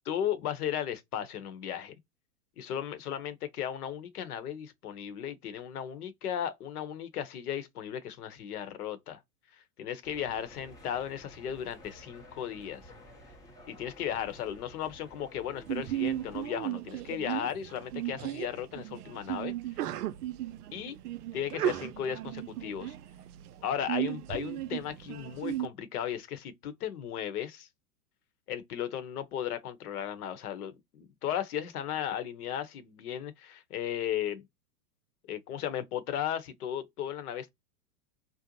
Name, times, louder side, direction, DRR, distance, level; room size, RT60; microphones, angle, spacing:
voice 1, 0.1-1.9 2.6-9.2 9.8-12.9 13.7-19.5 20.7-21.0 21.3-22.9 23.6-27.7 28.5-34.4 35.2-37.5, left 10 dB, 70° left, 0.8 m, -35 dB
sound 1, 10.0-16.5, equal, 10° left, 0.5 m, -53 dB
Sneeze, 15.7-25.6, right 13 dB, 75° right, 0.5 m, -36 dB
2.6 x 2.0 x 2.7 m
hypercardioid pair, 115°, 46 cm